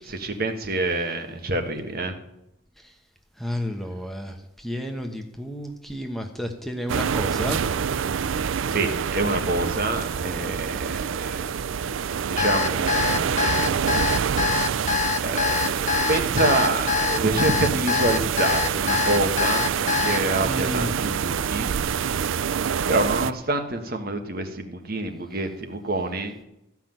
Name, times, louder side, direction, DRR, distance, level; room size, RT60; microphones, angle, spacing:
voice 1, 0.1-2.1 8.7-11.4 12.2-13.4 14.8-21.7 22.9-26.3, right 2 dB, 50° right, 5 dB, 1.5 m, -27 dB
voice 2, 3.4-4.3 4.6-7.6 20.4-20.9, equal, ahead, 3 dB, 1.1 m, -31 dB
sound 1, 6.9-23.3, right 7 dB, 75° right, 0.4 m, -26 dB
Alarm, 12.4-20.2, left 7 dB, 35° left, 0.8 m, -24 dB
14.5 x 5.9 x 9.1 m, 0.84 s
head